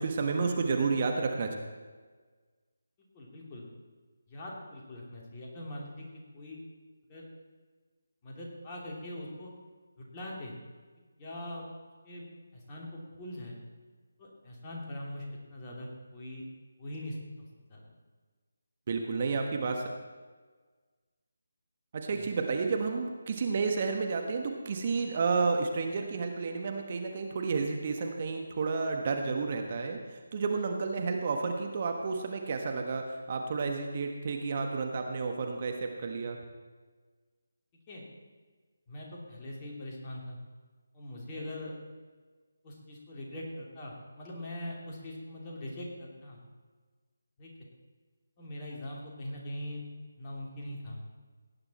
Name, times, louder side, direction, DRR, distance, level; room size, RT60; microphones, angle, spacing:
voice 1, 0.0-1.6 18.9-19.8 21.9-36.4, right 4 dB, 40° right, 3 dB, 1.3 m, -31 dB
voice 2, 3.1-3.6 4.3-6.1 6.3-6.6 7.1-7.3 8.2-9.5 10.0-10.5 11.2-11.7 12.0-12.3 12.5-13.5 14.2-16.4 16.8-17.9 22.1-22.3 37.9-38.0 38.9-40.4 40.9-41.8 42.6-46.4 47.4-47.5 48.4-49.8 50.2-51.0, left 1 dB, 20° left, -4 dB, 3.0 m, -42 dB
17.5 x 9.7 x 4.3 m, 1.4 s
figure-of-eight pair, 155°, 0 cm